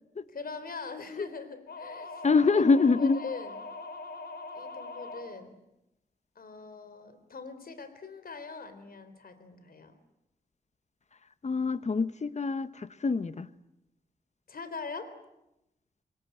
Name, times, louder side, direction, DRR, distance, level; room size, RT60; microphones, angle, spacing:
voice 1, 0.3-3.6 4.5-5.6 6.4-9.9 14.5-15.1, left 4 dB, 65° left, 11 dB, 3.6 m, -42 dB
sound 1, 1.7-5.3, left 3 dB, 85° left, 4.5 m, -42 dB
voice 2, 2.2-3.2 11.4-13.5, left 4 dB, 45° left, 14 dB, 1.0 m, -25 dB
27.0 x 22.0 x 9.3 m, 0.90 s
wide cardioid pair, 95°, 16 cm